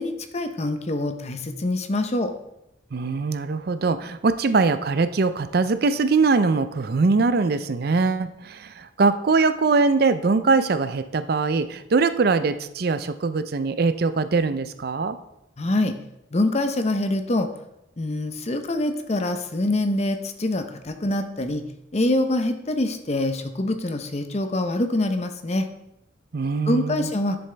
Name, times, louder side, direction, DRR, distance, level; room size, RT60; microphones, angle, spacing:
voice 1, 0.0-2.3 15.6-15.9 16.3-17.5 18.0-21.6 21.9-25.7 26.7-27.4, left 1 dB, 35° left, 7 dB, 0.7 m, -25 dB
voice 2, 2.9-15.2 26.3-27.1, right 4 dB, 55° right, 12 dB, 0.5 m, -22 dB
11.0 x 6.9 x 3.3 m, 0.85 s
head